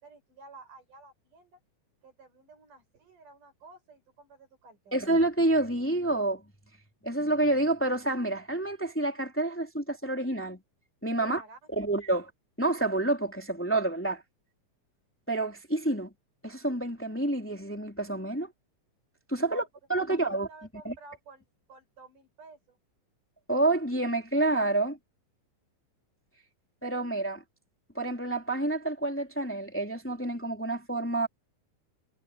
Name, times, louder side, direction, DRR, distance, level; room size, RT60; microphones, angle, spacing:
voice 1, 0.0-1.6 2.0-5.0 11.2-11.6 19.5-19.7 20.1-22.8, right 3 dB, 60° right, 7.6 m, -52 dB
voice 2, 4.9-6.4 7.0-10.6 11.0-11.4 11.8-12.3 12.6-14.2 15.3-16.1 16.4-18.5 19.3-19.6 19.9-20.5 20.8-20.9 23.5-25.0 26.8-27.4 27.9-31.3, right 2 dB, 5° left, 2.6 m, -28 dB
omnidirectional pair, 4.1 m